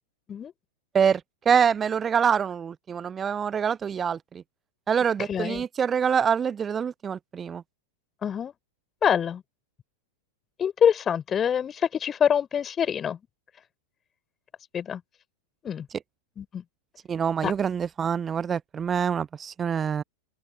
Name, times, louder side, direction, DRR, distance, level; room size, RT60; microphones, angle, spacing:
voice 1, 0.9-4.4 4.9-7.6 17.1-20.0, right 7 dB, 20° right, 0.8 m, -25 dB
voice 2, 5.2-5.6 8.2-8.5 9.0-9.4 10.6-13.2 14.7-15.0 15.6-15.9 16.4-16.6 17.4-17.5, left 8 dB, 25° left, 3.8 m, -25 dB
open air
figure-of-eight pair, 90°, 0 cm